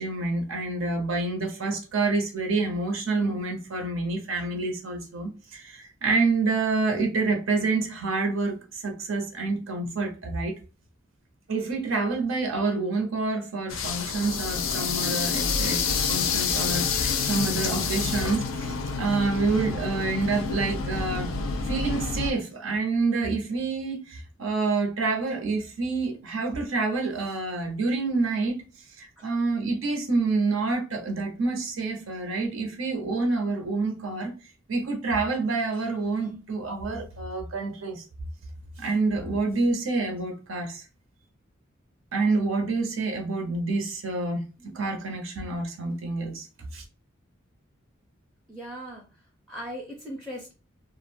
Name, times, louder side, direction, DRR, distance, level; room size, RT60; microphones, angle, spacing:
voice 1, 0.0-10.5 11.5-21.3 21.7-28.6 29.0-34.3 34.7-38.0 38.8-40.8 42.1-44.4 44.7-46.5 46.7-46.8, right 3 dB, 75° right, 3 dB, 0.6 m, -27 dB
sound 1, 13.7-22.3, left 5 dB, 75° left, 0.4 m, -28 dB
voice 2, 48.5-49.0 49.5-50.5, equal, ahead, -1 dB, 0.5 m, -38 dB
2.3 x 2.0 x 3.2 m, 0.34 s
head